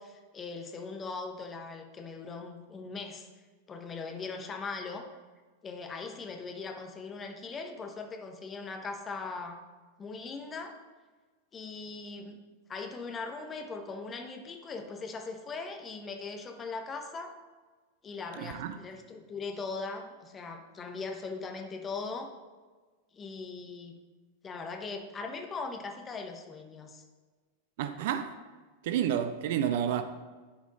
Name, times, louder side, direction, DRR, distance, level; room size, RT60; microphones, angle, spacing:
voice 1, 0.0-3.3 3.7-5.1 5.6-9.6 10.0-10.7 11.5-12.4 12.7-17.3 18.0-22.3 23.1-24.0 24.4-27.0, left 4 dB, 20° left, 1.0 m, -40 dB
voice 2, 18.4-18.8 27.8-28.3 28.8-30.0, right 9 dB, 50° right, 0.5 m, -30 dB
11.0 x 5.0 x 3.9 m
figure-of-eight pair, 90°, 0 cm